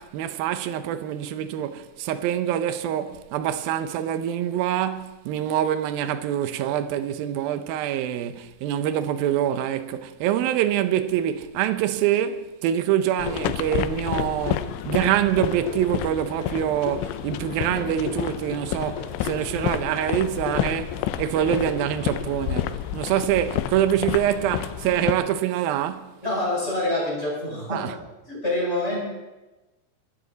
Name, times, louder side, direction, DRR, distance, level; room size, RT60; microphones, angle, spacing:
voice 1, 0.0-26.1 27.7-28.0, right 11 dB, 80° right, 2.2 m, -25 dB
sound 1, 13.2-25.1, left 13 dB, 80° left, 2.8 m, -30 dB
sound 2, 13.3-22.7, left 7 dB, 65° left, 4.0 m, -36 dB
voice 2, 26.2-27.8 28.3-29.0, left 1 dB, 15° left, 6.2 m, -26 dB
24.5 x 13.5 x 4.0 m
omnidirectional pair, 5.1 m